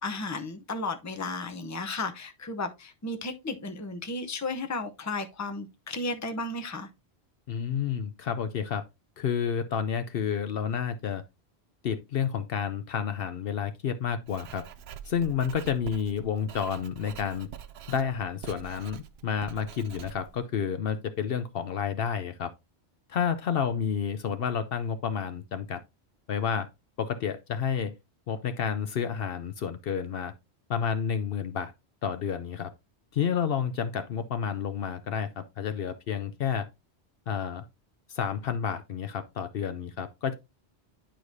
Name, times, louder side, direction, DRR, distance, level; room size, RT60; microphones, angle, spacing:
voice 1, 0.0-6.9, left 3 dB, 20° left, 0.7 m, -34 dB
voice 2, 7.5-8.8 9.2-11.2 11.8-14.6 15.1-17.5 17.9-22.5 23.1-25.8 26.3-26.7 27.0-27.9 28.3-30.3 30.7-31.7 32.0-32.7 33.1-36.7 37.3-37.6 38.1-40.3, left 7 dB, 65° left, 0.8 m, -30 dB
Writing, 14.3-20.4, right 8 dB, 70° right, 0.8 m, -45 dB
10.5 x 4.8 x 2.6 m
omnidirectional pair, 1.1 m